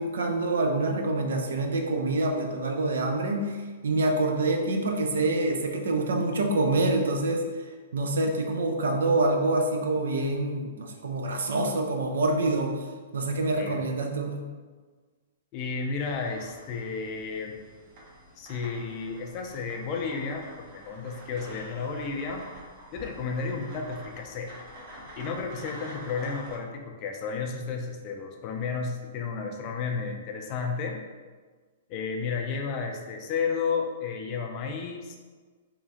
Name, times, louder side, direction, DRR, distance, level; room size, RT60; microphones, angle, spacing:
voice 1, 0.0-3.6 3.8-7.4 7.9-12.7 13.1-14.4, right 2 dB, 70° right, 3 dB, 0.4 m, -26 dB
voice 2, 15.5-17.6 18.4-22.5 22.9-24.5 25.2-31.0 31.9-35.2, left 5 dB, 40° left, 2 dB, 0.4 m, -32 dB
sound 1, 16.0-26.6, equal, 45° right, 0.8 m, -47 dB
2.9 x 2.3 x 2.6 m, 1.4 s
hypercardioid pair, 115°, 0 cm